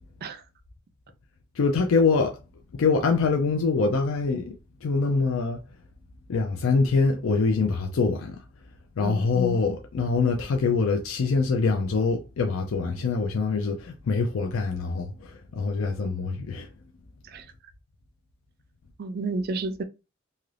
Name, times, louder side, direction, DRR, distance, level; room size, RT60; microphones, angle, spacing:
voice 1, 1.5-2.4 2.7-5.6 6.3-8.4 9.0-16.7, left 4 dB, 75° left, 0.4 m, -24 dB
voice 2, 19.0-19.8, right 3 dB, 50° right, 0.4 m, -31 dB
2.8 x 2.4 x 3.2 m
head